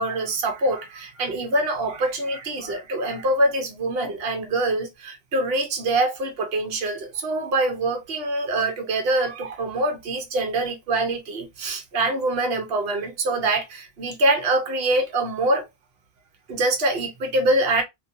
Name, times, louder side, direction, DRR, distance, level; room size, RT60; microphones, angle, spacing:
voice 1, 0.0-15.6 16.5-17.8, right 2 dB, 65° right, 1.1 m, -24 dB
2.9 x 2.7 x 2.6 m
omnidirectional pair, 1.1 m